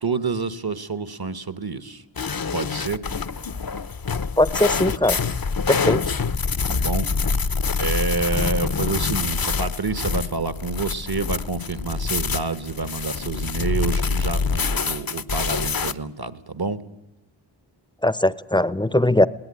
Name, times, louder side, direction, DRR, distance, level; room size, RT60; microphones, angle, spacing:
voice 1, 0.0-2.0 2.5-3.0 5.8-6.0 6.6-7.1 7.8-16.8, right 4 dB, 50° right, 13 dB, 1.4 m, -28 dB
sound 1, 2.2-15.9, left 5 dB, 45° left, 0.8 m, -26 dB
voice 2, 4.4-5.2 5.7-6.0 18.0-19.3, left 1 dB, 10° left, 18 dB, 0.7 m, -19 dB
21.0 x 18.0 x 9.8 m, 0.88 s
wide cardioid pair, 50°, 48 cm